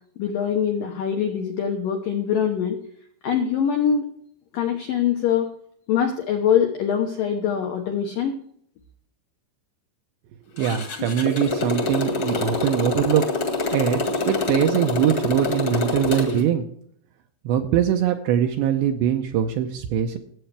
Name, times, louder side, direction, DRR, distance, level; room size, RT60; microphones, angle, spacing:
voice 1, 0.2-2.8 3.2-4.1 4.5-5.5 5.9-8.3, left 8 dB, 85° left, 3 dB, 1.9 m, -23 dB
voice 2, 10.5-13.2 13.7-16.7 17.5-20.2, right 10 dB, 80° right, 5 dB, 2.7 m, -22 dB
Motorcycle, 10.6-16.4, left 3 dB, 55° left, 1.4 m, -26 dB
19.0 x 8.3 x 3.4 m, 0.64 s
omnidirectional pair, 5.6 m